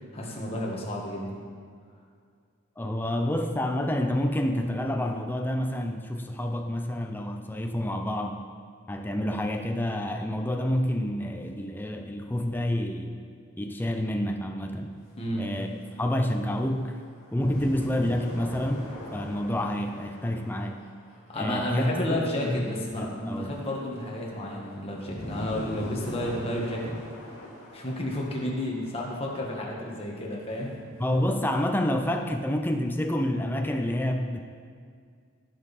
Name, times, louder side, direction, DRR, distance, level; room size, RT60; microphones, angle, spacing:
voice 1, 0.0-1.4 15.2-15.5 21.3-27.0 27.7-30.7, left 1 dB, 25° left, -3 dB, 1.5 m, -31 dB
voice 2, 2.8-8.5 8.9-13.2 13.6-14.9 15.4-15.7 16.0-17.0 17.3-18.9 19.1-20.8 21.3-23.5 31.0-34.4, left 1 dB, 10° left, 4 dB, 0.5 m, -28 dB
sound 1, 15.0-21.3 22.6-29.1 29.3-29.4 30.5-31.4, left 1 dB, 70° left, 2.3 m, -41 dB
16.0 x 5.4 x 4.2 m, 2.1 s
head